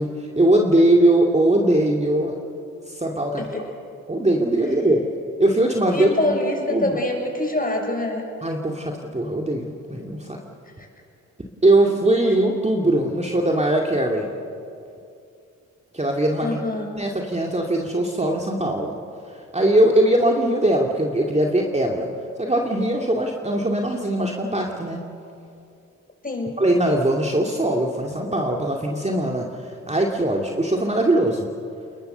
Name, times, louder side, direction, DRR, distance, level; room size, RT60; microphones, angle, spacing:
voice 1, 0.0-2.4 2.9-3.4 4.1-5.0 5.4-6.3 6.7-6.9 8.4-10.4 11.6-14.3 15.9-16.6 16.9-18.9 19.3-22.1 22.4-25.0 26.6-31.5, right 1 dB, 15° right, 0 dB, 2.4 m, -21 dB
voice 2, 5.9-8.2 16.4-16.9 26.2-26.6, left 2 dB, 20° left, 2 dB, 7.0 m, -25 dB
29.5 x 21.0 x 6.9 m, 2.6 s
hypercardioid pair, 40°, 39 cm